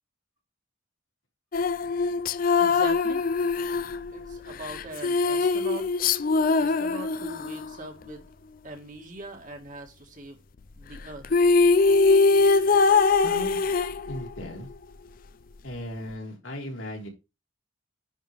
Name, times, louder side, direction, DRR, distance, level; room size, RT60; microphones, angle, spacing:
sound 1, 1.5-7.7 11.0-11.1 11.2-14.4, left 4 dB, 45° left, 0.5 m, -22 dB
voice 1, 2.6-3.2 4.1-6.1 6.6-8.2 8.6-10.4 10.8-11.3, right 2 dB, 40° right, 1.9 m, -41 dB
voice 2, 13.2-14.7 15.6-17.1, left 1 dB, 85° left, 3.3 m, -37 dB
10.0 x 3.7 x 4.8 m
head